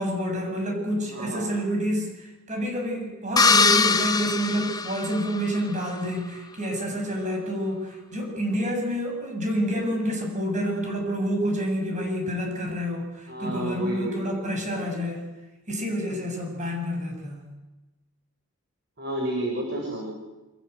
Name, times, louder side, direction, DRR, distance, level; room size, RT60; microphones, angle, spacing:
voice 1, 0.0-15.3 15.7-17.5, equal, 35° right, 2 dB, 7.7 m, -28 dB
voice 2, 1.1-1.5 13.3-14.9 19.0-20.1, right 1 dB, 50° right, 0 dB, 6.5 m, -31 dB
sound 1, 3.4-5.6, left 4 dB, 20° left, 1.1 m, -22 dB
28.0 x 25.5 x 8.2 m, 1.1 s
head